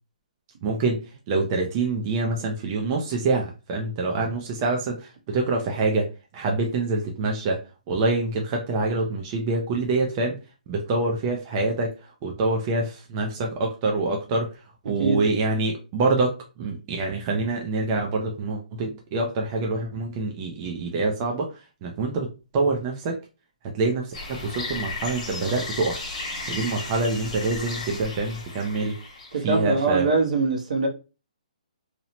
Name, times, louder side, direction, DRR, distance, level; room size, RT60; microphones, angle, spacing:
voice 1, 0.6-1.0 1.3-6.1 6.3-7.6 7.9-10.4 10.7-14.6 14.8-23.2 23.7-26.0 26.5-29.0 29.4-30.1, right 3 dB, 25° right, 0.4 m, -26 dB
sound 1, 24.1-29.4, left 3 dB, 55° left, 1.1 m, -35 dB
voice 2, 29.3-30.9, right 3 dB, 65° right, 0.9 m, -23 dB
2.7 x 2.0 x 2.7 m
hypercardioid pair, 165°, 4 cm